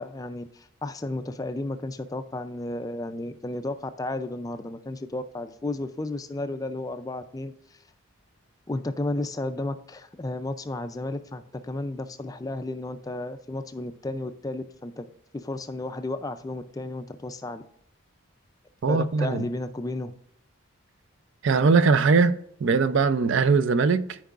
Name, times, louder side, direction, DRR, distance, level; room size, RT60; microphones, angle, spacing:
voice 1, 0.0-7.8 8.7-15.1 15.3-17.6 18.9-20.1, left 2 dB, 15° left, 0.3 m, -33 dB
voice 2, 18.8-19.5 21.4-24.2, right 4 dB, 60° right, 0.4 m, -21 dB
14.0 x 4.7 x 2.4 m
head